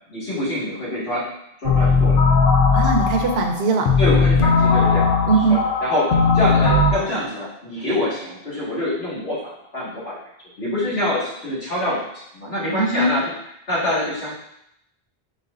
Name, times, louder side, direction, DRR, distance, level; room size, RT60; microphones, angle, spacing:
voice 1, 0.1-1.2 1.6-2.2 4.0-10.2 10.6-12.0 12.3-13.3 13.7-14.3, left 1 dB, 80° left, -8 dB, 2.0 m, -25 dB
sound 1, 1.6-6.9, left 4 dB, 65° left, 0.8 m, -17 dB
voice 2, 2.7-3.9 5.3-5.6 12.7-13.2, right 3 dB, 85° right, 3 dB, 0.9 m, -20 dB
4.7 x 4.2 x 2.5 m, 0.77 s
omnidirectional pair, 1.0 m